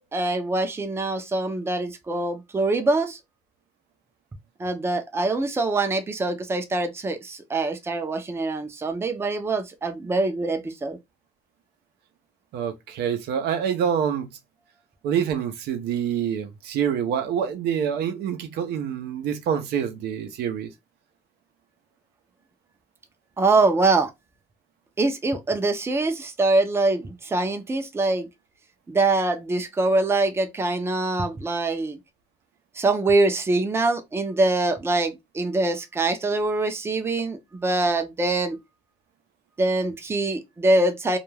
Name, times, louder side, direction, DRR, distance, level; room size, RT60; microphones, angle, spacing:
voice 1, 0.1-3.2 4.6-11.0 23.4-24.1 25.0-28.3 28.9-32.0 32.8-38.6 39.6-41.2, right 2 dB, 15° right, 0.5 m, -24 dB
voice 2, 12.5-14.3 15.0-20.7, right 8 dB, 75° right, 0.6 m, -26 dB
2.3 x 2.1 x 3.1 m
cardioid pair, 110°, 17 cm